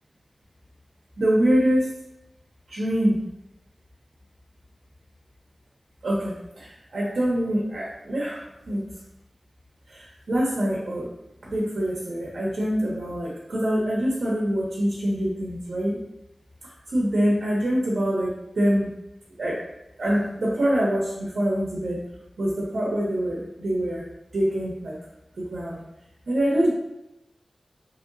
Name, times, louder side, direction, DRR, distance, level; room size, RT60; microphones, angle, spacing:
voice 1, 1.2-1.9 2.7-3.2 6.0-8.9 9.9-11.1 11.4-16.0 16.6-18.9 19.4-19.6 20.0-22.0 22.4-24.0 24.3-24.9 25.4-25.8 26.3-26.7, equal, 85° right, -5 dB, 0.7 m, -25 dB
3.0 x 2.8 x 2.5 m, 0.88 s
wide cardioid pair, 80°, 0 cm